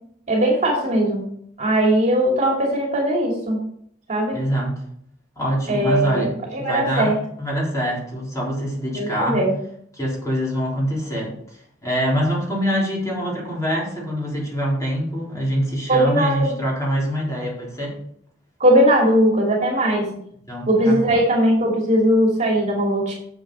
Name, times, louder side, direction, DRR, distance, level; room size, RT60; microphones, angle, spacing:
voice 1, 0.3-1.2 1.6-3.6 4.1-4.4 5.7-6.3 6.6-7.1 9.0-9.5 15.9-16.5 18.6-20.0 20.7-23.1, right 1 dB, 35° right, -1 dB, 2.5 m, -19 dB
voice 2, 4.3-4.8 5.4-9.4 9.9-11.3 11.8-18.0 20.5-21.2, equal, 15° left, -5 dB, 3.9 m, -24 dB
8.9 x 7.7 x 4.9 m, 0.67 s
head